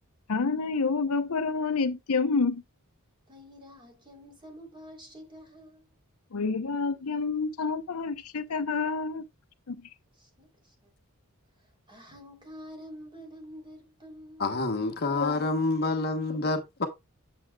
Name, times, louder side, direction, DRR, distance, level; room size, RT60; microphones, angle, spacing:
voice 1, 0.3-2.6 6.3-9.2 9.7-9.8, left 4 dB, 80° left, 0.7 m, -28 dB
voice 2, 3.3-5.9 10.1-10.9 11.6-14.5, equal, 20° right, 3.2 m, -48 dB
voice 3, 14.4-16.9, left 3 dB, 45° left, 1.0 m, -27 dB
8.2 x 7.0 x 2.3 m
head